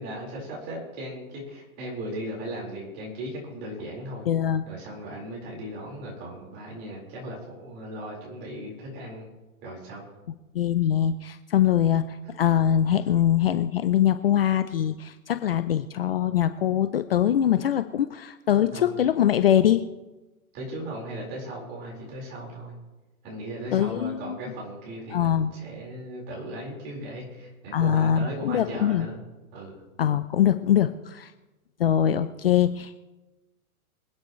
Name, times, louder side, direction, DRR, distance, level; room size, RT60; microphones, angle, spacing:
voice 1, 0.0-4.3 4.7-9.3 9.6-10.0 18.7-18.9 20.5-22.7 23.2-29.2 29.5-29.8, right 1 dB, 25° right, -2 dB, 4.5 m, -37 dB
voice 2, 4.3-4.7 10.5-19.8 23.7-24.4 25.1-25.5 27.7-29.1 30.0-31.3 31.8-32.9, left 10 dB, 45° left, 11 dB, 0.6 m, -23 dB
26.0 x 9.7 x 3.2 m, 1.1 s
hypercardioid pair, 165°, 43 cm